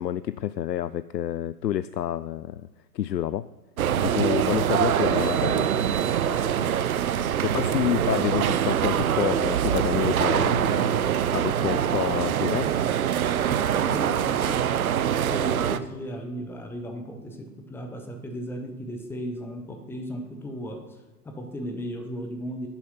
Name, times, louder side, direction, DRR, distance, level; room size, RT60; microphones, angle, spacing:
voice 1, 0.0-2.6 2.9-3.5 4.0-5.7 7.4-11.0 11.3-12.7, left 11 dB, 85° left, 15 dB, 0.6 m, -28 dB
sound 1, 3.8-15.8, right 9 dB, 60° right, 0.8 m, -24 dB
voice 2, 13.4-14.7 15.3-21.0 21.2-22.7, equal, 5° left, 4 dB, 1.0 m, -36 dB
10.5 x 7.3 x 5.7 m, 1.2 s
hypercardioid pair, 125°, 49 cm